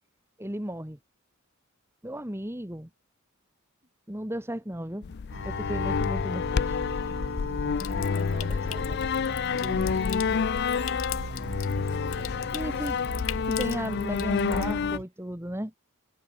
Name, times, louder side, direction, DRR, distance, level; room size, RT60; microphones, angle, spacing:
voice 1, 0.4-1.0 2.0-2.9 4.1-5.1 5.4-6.8 12.5-13.0 13.5-15.7, equal, 10° right, 2.0 m, -34 dB
voice 2, 4.7-5.2 7.7-7.9 8.2-11.3 11.7-13.0, right 2 dB, 30° right, 3.6 m, -49 dB
sound 1, 5.0-15.0, left 5 dB, 50° left, 0.4 m, -28 dB
sound 2, 5.3-15.0, right 3 dB, 70° right, 0.9 m, -41 dB
Water tap faucet / Sink (filling or washing) / Trickle dribble, 7.8-14.7, left 14 dB, 70° left, 1.2 m, -42 dB
head